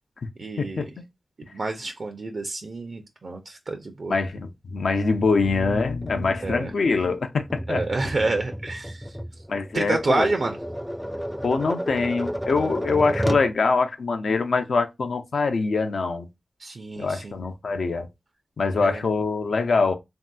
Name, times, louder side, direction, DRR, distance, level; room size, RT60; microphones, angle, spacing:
voice 1, 0.4-0.9 1.5-4.1 6.4-6.7 7.7-9.1 9.7-10.6 16.6-17.3 18.8-19.0, right 3 dB, 65° right, 0.4 m, -28 dB
voice 2, 4.1-7.8 9.5-10.3 11.4-16.3 17.0-18.1 18.6-19.9, left 4 dB, 85° left, 0.5 m, -24 dB
Tap, 6.0-13.5, equal, ahead, 0.3 m, -32 dB
3.2 x 2.7 x 2.2 m
wide cardioid pair, 70°, 0 cm